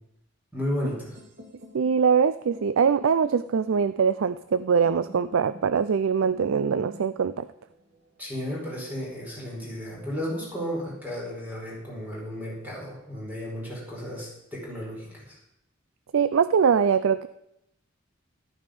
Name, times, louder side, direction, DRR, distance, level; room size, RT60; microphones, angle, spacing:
voice 1, 0.5-1.1 8.2-15.4, equal, 10° right, -5 dB, 4.9 m, -33 dB
sound 1, 1.1-9.1, equal, 60° right, 2.4 m, -50 dB
voice 2, 1.7-7.5 16.1-17.3, right 6 dB, 85° right, 14 dB, 0.4 m, -22 dB
14.0 x 11.5 x 5.2 m, 0.82 s
head